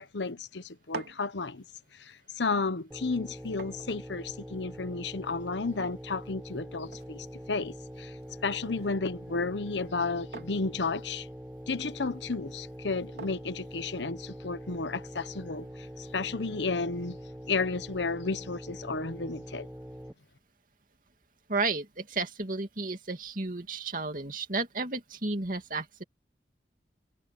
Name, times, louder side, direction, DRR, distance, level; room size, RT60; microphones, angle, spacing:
voice 1, 0.0-1.6 1.9-8.2 8.4-11.3 11.7-17.2 17.5-19.7, left 4 dB, 85° left, 1.0 m, -33 dB
sound 1, 0.6-14.5, right 4 dB, 75° right, 2.7 m, -51 dB
sound 2, 2.9-20.1, equal, 10° right, 1.0 m, -44 dB
voice 2, 21.5-26.0, right 3 dB, 50° right, 2.7 m, -32 dB
head